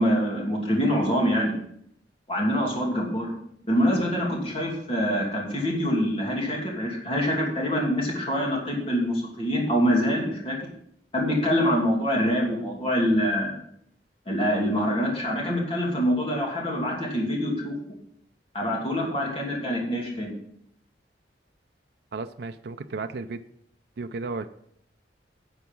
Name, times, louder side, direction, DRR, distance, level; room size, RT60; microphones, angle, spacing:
voice 1, 0.0-1.5 2.3-3.3 3.7-10.6 11.1-13.6 14.3-17.7 18.5-20.3, equal, 35° left, -2 dB, 2.7 m, -25 dB
voice 2, 22.1-23.4 24.0-24.5, right 3 dB, 65° right, 8 dB, 0.5 m, -34 dB
10.5 x 7.1 x 5.3 m, 0.70 s
head